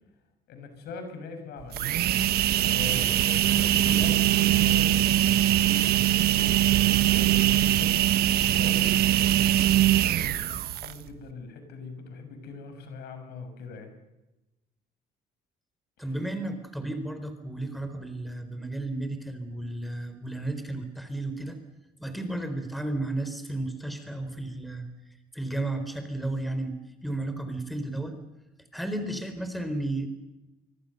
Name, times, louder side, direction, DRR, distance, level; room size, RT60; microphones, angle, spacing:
voice 1, 0.5-2.0 2.6-8.1 8.5-9.0 10.4-13.9 16.0-16.2, left 4 dB, 75° left, 7 dB, 6.4 m, -42 dB
sound 1, 1.6-11.1, right 13 dB, 70° right, 1.2 m, -22 dB
voice 2, 16.0-21.6 22.0-24.9 25.3-28.2 28.7-30.1, right 2 dB, ahead, 8 dB, 4.2 m, -33 dB
25.0 x 24.5 x 6.7 m, 1.0 s
cardioid pair, 110°, 17 cm